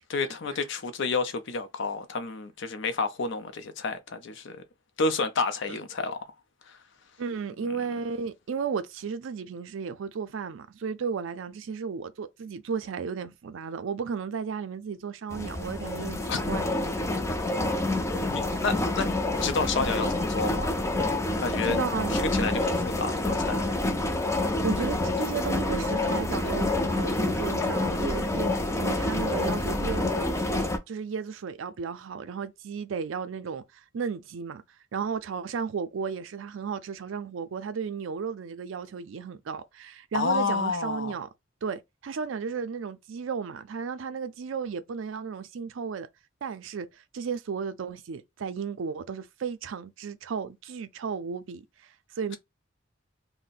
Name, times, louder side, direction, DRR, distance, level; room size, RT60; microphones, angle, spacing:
voice 1, 0.1-4.6 5.0-6.2 6.7-6.8 16.3-16.4 17.6-17.7 18.3-20.7 21.4-21.8 22.1-23.6 40.1-41.1, left 4 dB, 65° left, 0.5 m, -30 dB
voice 2, 7.2-16.7 21.6-22.2 24.6-34.6 34.9-41.3 41.6-46.1 46.4-52.4, right 6 dB, 75° right, 0.4 m, -34 dB
sound 1, 15.3-30.8, left 2 dB, 15° left, 0.4 m, -27 dB
2.6 x 2.1 x 3.8 m
head